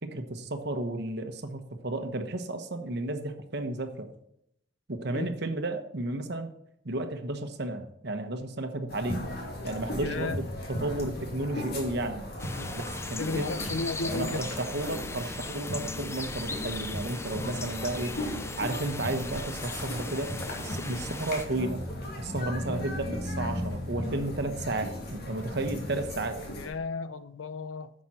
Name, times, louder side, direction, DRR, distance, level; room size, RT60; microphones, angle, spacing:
voice 1, 0.0-4.1 4.9-6.5 6.8-9.2 9.6-12.3 12.7-13.6 14.1-18.2 18.6-21.8 22.2-26.4, right 2 dB, 55° right, 1.1 m, -33 dB
sound 1, 8.9-26.7, left 1 dB, 55° left, 2.5 m, -37 dB
voice 2, 10.0-10.4 12.5-12.7 13.2-14.4 18.3-18.4 22.7-22.9 26.5-27.9, left 3 dB, 85° left, 0.7 m, -34 dB
sound 2, 12.4-21.5, left 3 dB, 15° left, 0.5 m, -39 dB
11.0 x 7.5 x 4.3 m
head